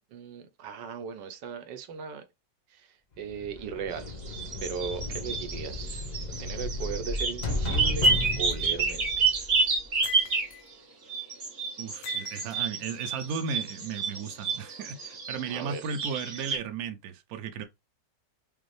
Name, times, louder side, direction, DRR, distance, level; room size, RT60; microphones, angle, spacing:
voice 1, 0.0-2.2 2.7-4.1 4.6-6.0 6.4-9.5 15.5-15.8, right 6 dB, 80° right, 1.3 m, -38 dB
sound 1, 3.3-10.1, left 2 dB, 40° left, 0.7 m, -34 dB
sound 2, 3.9-10.7 11.1-16.6, right 4 dB, 40° right, 1.0 m, -29 dB
sound 3, 8.0-8.6 10.0-10.7 12.0-12.6, left 10 dB, 75° left, 1.1 m, -42 dB
voice 2, 11.8-17.6, right 6 dB, 65° right, 1.0 m, -35 dB
5.2 x 2.0 x 3.2 m
omnidirectional pair, 1.9 m